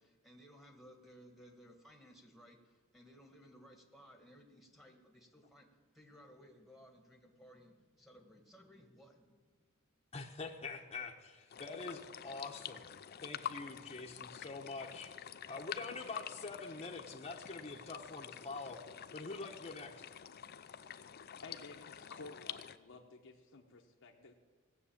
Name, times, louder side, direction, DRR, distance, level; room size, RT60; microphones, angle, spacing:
voice 1, 0.0-5.7 5.9-9.5, equal, ahead, 3 dB, 1.5 m, -59 dB
voice 2, 10.1-12.9 13.2-15.1 15.5-18.8 19.1-20.0, left 3 dB, 30° left, 1 dB, 1.0 m, -45 dB
sound 1, 11.5-22.8, left 9 dB, 45° left, 0.5 m, -48 dB
voice 3, 21.4-24.3, left 3 dB, 65° left, 1 dB, 1.0 m, -53 dB
17.0 x 6.9 x 8.6 m, 1.4 s
head